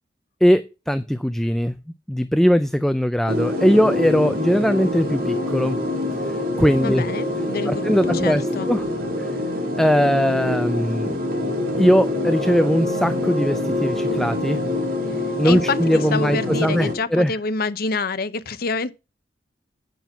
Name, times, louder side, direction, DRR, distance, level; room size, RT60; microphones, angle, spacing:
voice 1, 0.4-1.8 2.1-5.8 6.6-7.1 7.7-8.9 9.8-11.2 11.8-14.6 15.4-17.3, equal, ahead, 0.4 m, -20 dB
sound 1, 3.3-16.9, left 1 dB, 55° right, 2.4 m, -25 dB
voice 2, 6.8-8.7 15.4-15.8 16.1-18.9, left 4 dB, 55° left, 0.7 m, -27 dB
9.2 x 6.0 x 5.8 m
head